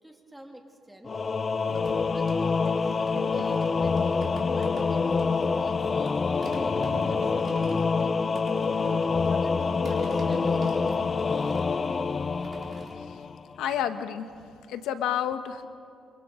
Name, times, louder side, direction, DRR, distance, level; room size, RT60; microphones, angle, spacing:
voice 1, 0.0-1.2 2.1-8.6 9.2-11.1, right 1 dB, 5° right, 2 dB, 2.6 m, -48 dB
Singing / Musical instrument, 1.1-13.5, left 4 dB, 35° left, 0.5 m, -26 dB
sound 1, 1.7-5.8 6.1-12.9, right 3 dB, 55° right, 4.3 m, -43 dB
voice 2, 13.6-14.3 14.7-15.7, left 9 dB, 90° left, 9 dB, 1.1 m, -29 dB
28.0 x 25.0 x 3.8 m, 2.4 s
cardioid pair, 90°, 0 cm